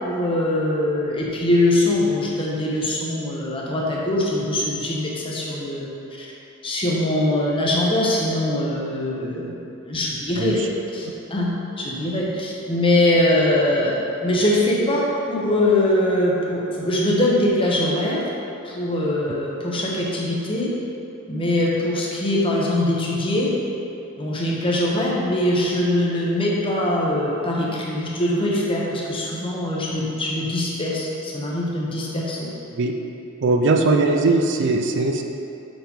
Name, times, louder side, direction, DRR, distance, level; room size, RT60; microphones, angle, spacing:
voice 1, 0.0-5.9 6.2-6.3 6.6-10.7 10.9-11.5 11.8-13.9 14.2-18.2 18.6-20.7 21.3-23.5 24.2-32.5, left 1 dB, 25° left, -4 dB, 1.0 m, -22 dB
voice 2, 33.4-35.2, right 3 dB, 55° right, 3 dB, 0.4 m, -19 dB
7.2 x 5.6 x 3.6 m, 2.9 s
head